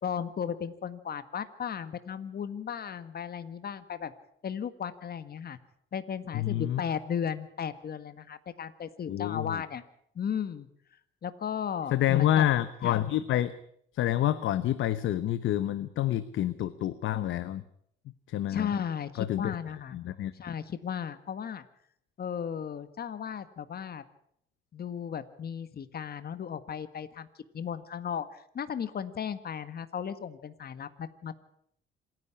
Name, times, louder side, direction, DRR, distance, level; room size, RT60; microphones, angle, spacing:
voice 1, 0.0-4.1 4.4-5.6 5.9-9.8 10.1-10.7 11.2-12.4 12.8-12.9 18.5-20.0 20.3-21.6 22.2-24.0 24.7-27.3 27.5-31.3, left 8 dB, 50° left, 12 dB, 1.7 m, -35 dB
voice 2, 6.3-6.8 9.1-9.6 11.9-13.5 13.9-17.6 18.3-18.7 19.2-19.5 19.9-20.3, left 12 dB, 75° left, 13 dB, 1.0 m, -28 dB
26.5 x 11.0 x 9.9 m, 0.69 s
cardioid pair, 90°, 20 cm